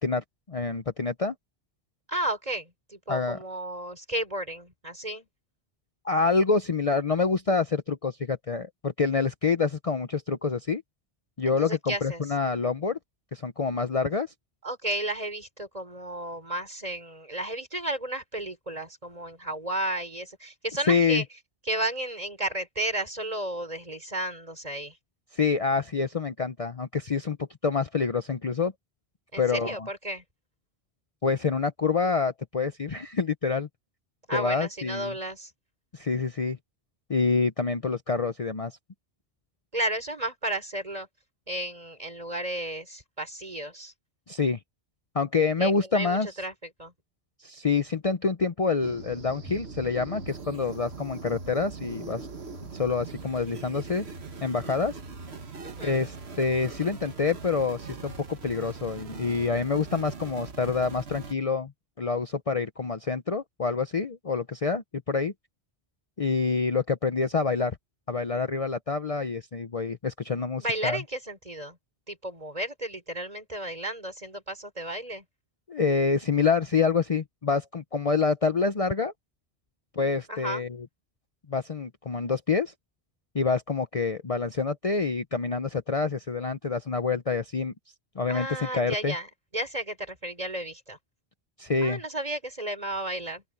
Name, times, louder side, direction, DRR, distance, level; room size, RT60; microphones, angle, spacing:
voice 1, 0.0-1.3 3.1-3.4 6.0-10.8 11.4-13.0 13.3-14.3 20.9-21.2 25.3-28.7 29.4-29.9 31.2-33.7 34.3-35.1 35.9-36.6 37.1-38.7 44.3-44.6 45.1-46.3 47.4-52.3 52.7-54.1 54.4-55.0 55.8-61.7 62.0-65.3 66.2-67.8 68.1-71.0 75.7-79.1 79.9-80.9 81.5-82.7 83.3-87.7 88.2-89.1 91.6-92.0, left 4 dB, 35° left, 0.8 m, -27 dB
voice 2, 2.1-5.3 11.4-12.2 14.6-21.2 21.6-25.0 29.3-30.2 34.3-35.5 39.7-41.1 41.5-43.9 45.6-46.5 46.8-46.9 55.6-56.0 70.6-71.8 72.1-75.2 80.3-80.6 88.3-91.0 91.8-93.4, right 1 dB, 35° right, 4.9 m, -33 dB
sound 1, 48.8-61.3, right 4 dB, 75° right, 1.8 m, -41 dB
open air
omnidirectional pair, 1.1 m